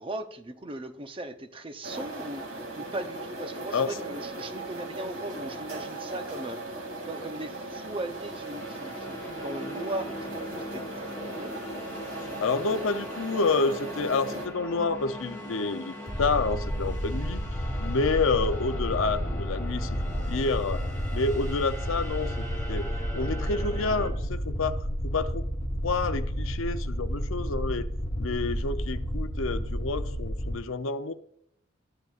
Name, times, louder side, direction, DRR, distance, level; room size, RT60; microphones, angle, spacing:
voice 1, 0.0-2.5 2.8-6.6 7.1-11.7, right 1 dB, 25° right, 0.7 m, -38 dB
sound 1, 1.8-14.5, right 2 dB, 65° right, 2.4 m, -38 dB
sound 2, 7.9-24.1, left 1 dB, 10° left, 2.1 m, -41 dB
voice 2, 12.2-17.4 17.8-19.9 20.3-20.8 21.1-22.9 23.1-25.5 25.8-27.9 28.2-31.1, left 4 dB, 70° left, 0.6 m, -29 dB
sound 3, 16.1-30.6, equal, 30° left, 1.8 m, -31 dB
13.5 x 9.5 x 2.5 m
head